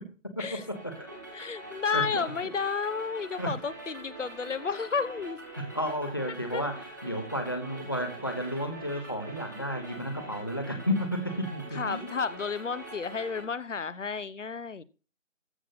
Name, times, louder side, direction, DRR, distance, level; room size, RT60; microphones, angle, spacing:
voice 1, 0.4-1.1 1.9-2.2 3.4-3.6 5.6-12.1, equal, 20° left, 1.0 m, -32 dB
sound 1, 0.6-13.4, right 2 dB, 15° right, 1.3 m, -44 dB
voice 2, 1.3-5.4 6.5-6.6 7.0-7.2 10.7-10.9 11.7-14.8, left 5 dB, 70° left, 1.0 m, -32 dB
14.0 x 6.1 x 4.0 m
figure-of-eight pair, 180°, 38 cm